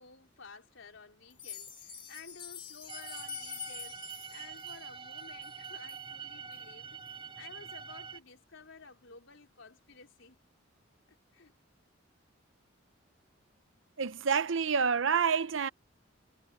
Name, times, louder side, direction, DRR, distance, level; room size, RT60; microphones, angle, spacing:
voice 1, 0.0-4.0 4.3-7.0 7.4-10.4 11.3-11.5, left 4 dB, 75° left, 3.5 m, -53 dB
sound 1, 1.3-6.0 6.5-6.6 7.1-7.2 7.7-7.8, left 7 dB, 25° left, 2.7 m, -46 dB
sound 2, 2.9-8.2, right 7 dB, 25° right, 2.6 m, -45 dB
voice 2, 14.0-15.7, right 6 dB, 75° right, 0.7 m, -28 dB
head